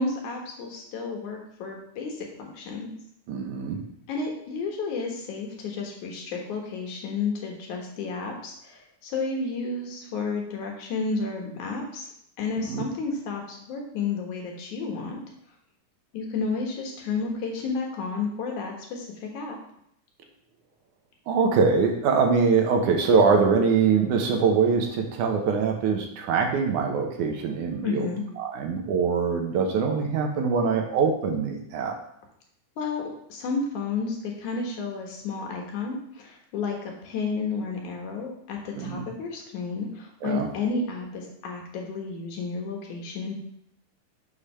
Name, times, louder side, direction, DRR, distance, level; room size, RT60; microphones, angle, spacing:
voice 1, 0.0-2.9 4.1-12.1 12.4-15.2 16.1-19.6 27.8-28.2 32.8-43.3, left 4 dB, 75° left, 0 dB, 2.8 m, -31 dB
voice 2, 3.3-3.8 12.6-12.8 21.3-28.1 28.4-32.0 38.8-39.1 40.2-40.5, right 5 dB, 80° right, 3 dB, 2.5 m, -23 dB
7.0 x 5.1 x 5.6 m, 0.71 s
omnidirectional pair, 3.6 m